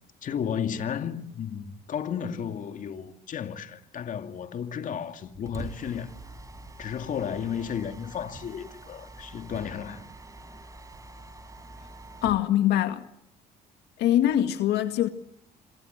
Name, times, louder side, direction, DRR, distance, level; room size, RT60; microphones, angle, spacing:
voice 1, 0.2-6.1 6.8-10.1, left 8 dB, 50° left, 2.5 m, -33 dB
Mechanisms, 5.2-12.5, right 2 dB, 20° right, 4.5 m, -45 dB
voice 2, 12.2-13.0 14.0-15.1, left 12 dB, 80° left, 2.1 m, -23 dB
27.0 x 26.5 x 8.1 m
cardioid pair, 110°, 17 cm